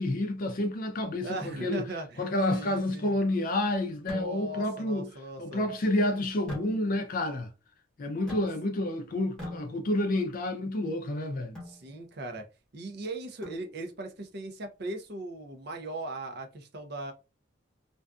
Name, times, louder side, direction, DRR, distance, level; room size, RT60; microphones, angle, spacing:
voice 1, 0.0-1.8 2.2-5.1 5.4-7.5 8.0-11.6, left 1 dB, 45° left, 0.4 m, -29 dB
voice 2, 1.2-3.2 4.1-5.6 11.7-12.4 12.7-17.1, right 2 dB, 55° right, 0.6 m, -38 dB
sound 1, 4.1-4.7 6.5-7.2 8.3-8.9 9.4-10.2 11.5-11.9 13.4-14.0, left 1 dB, 5° left, 1.0 m, -43 dB
2.6 x 2.3 x 2.3 m
head